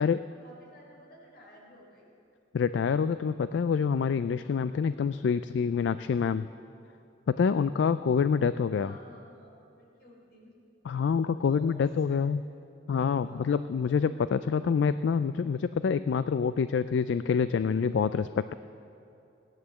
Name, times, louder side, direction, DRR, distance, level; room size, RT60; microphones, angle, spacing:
voice 1, 0.0-2.1 8.7-10.5 11.4-12.3 13.2-13.7, equal, 55° left, -2 dB, 4.0 m, -53 dB
voice 2, 2.5-6.5 7.4-8.9 10.9-12.4 12.9-18.5, left 6 dB, 70° left, 13 dB, 0.3 m, -26 dB
17.0 x 10.5 x 7.1 m, 2.8 s
head